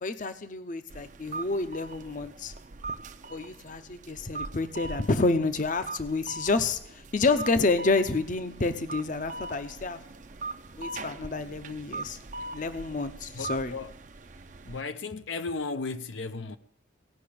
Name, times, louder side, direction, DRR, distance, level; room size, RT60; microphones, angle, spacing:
voice 1, 0.0-2.5 3.3-10.0 10.8-12.2 12.5-13.7, left 3 dB, 40° left, 0.6 m, -29 dB
sound 1, 0.9-14.8, right 3 dB, 40° right, 0.6 m, -41 dB
voice 2, 13.3-13.9 14.6-16.6, left 3 dB, 85° left, 0.7 m, -35 dB
17.0 x 5.9 x 8.6 m
head